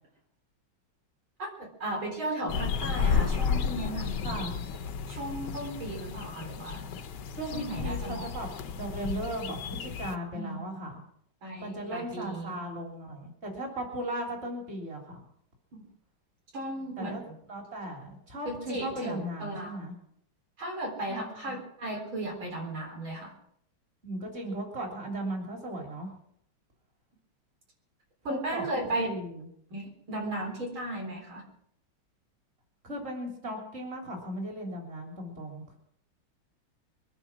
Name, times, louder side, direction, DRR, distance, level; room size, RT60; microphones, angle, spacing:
voice 1, 1.4-4.6 5.1-6.9 7.5-8.3 10.3-10.6 11.4-12.5 16.5-17.4 18.4-19.8 20.6-23.3 28.2-29.1 29.7-31.5, right 1 dB, 90° right, 0 dB, 4.6 m, -35 dB
sound 1, 2.5-10.2, left 6 dB, 65° left, 1.4 m, -32 dB
voice 2, 4.2-4.6 7.4-11.0 11.6-15.2 17.0-17.2 17.5-19.9 21.1-21.6 24.0-26.1 28.3-29.4 32.8-35.8, right 1 dB, 30° right, 1 dB, 3.7 m, -37 dB
22.5 x 9.9 x 6.2 m, 0.71 s
omnidirectional pair, 2.2 m